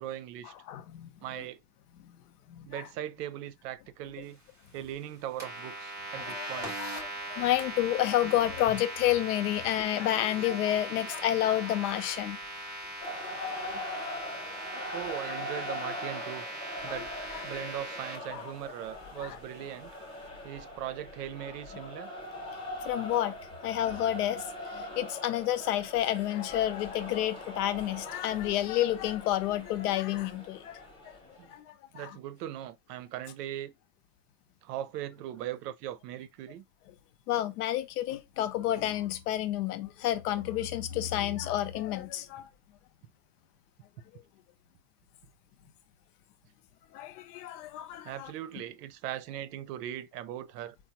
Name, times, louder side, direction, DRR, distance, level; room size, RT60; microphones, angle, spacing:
voice 1, 0.0-0.5 1.2-1.6 2.6-4.4 4.7-6.8 14.9-16.4 16.8-17.1 17.4-19.9 20.4-22.1 31.4-31.5 31.9-33.7 34.6-36.6 48.0-50.8, right 12 dB, 75° right, 0.7 m, -39 dB
voice 2, 0.7-1.1 2.0-2.2 2.5-2.8 6.3-6.5 6.8-12.4 13.5-13.8 14.8-15.0 16.8-17.0 17.3-17.6 18.3-18.4 19.2-19.4 22.8-23.4 23.6-31.1 31.5-32.2 37.3-42.5 46.9-48.3, left 13 dB, 70° left, 0.7 m, -30 dB
sound 1, 5.4-18.2, right 1 dB, 10° right, 0.3 m, -40 dB
sound 2, 13.0-31.5, left 1 dB, 10° left, 0.8 m, -42 dB
4.6 x 2.2 x 2.8 m
supercardioid pair, 170°, 47 cm